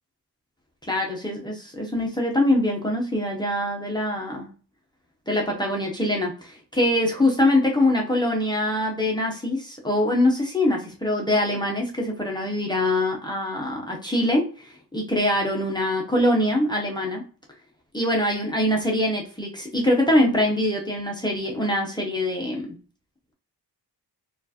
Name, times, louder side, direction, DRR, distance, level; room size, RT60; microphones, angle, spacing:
voice 1, 0.9-4.5 5.3-17.2 17.9-22.7, left 1 dB, 10° left, -1 dB, 0.7 m, -23 dB
4.3 x 2.5 x 2.7 m, 0.38 s
wide cardioid pair, 140°, 40 cm